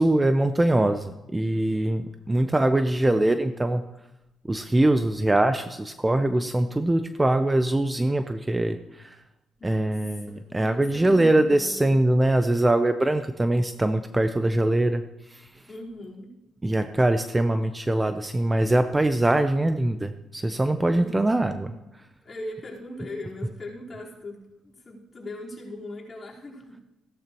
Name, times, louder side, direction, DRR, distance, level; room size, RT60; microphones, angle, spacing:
voice 1, 0.0-3.8 4.5-9.1 9.6-15.0 16.6-21.7, right 1 dB, 15° right, 9 dB, 0.6 m, -23 dB
voice 2, 9.6-12.0 15.7-16.3 20.9-21.6 22.2-26.8, left 1 dB, 35° left, -5 dB, 4.2 m, -39 dB
15.5 x 12.0 x 3.0 m, 0.96 s
cardioid pair, 90°, 0 cm